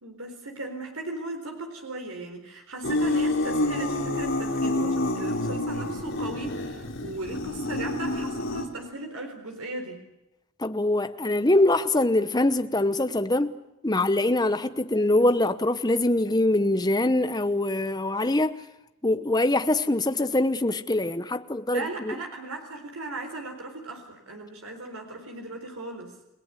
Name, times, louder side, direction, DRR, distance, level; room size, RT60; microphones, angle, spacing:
voice 1, 0.0-10.0 21.7-26.2, right 2 dB, 85° right, 4.2 m, -37 dB
sound 1, 2.8-8.7, left 2 dB, 60° left, 4.1 m, -28 dB
voice 2, 10.6-13.5 13.8-18.6 19.0-22.2, left 2 dB, 20° left, 1.0 m, -23 dB
30.0 x 19.0 x 8.3 m
head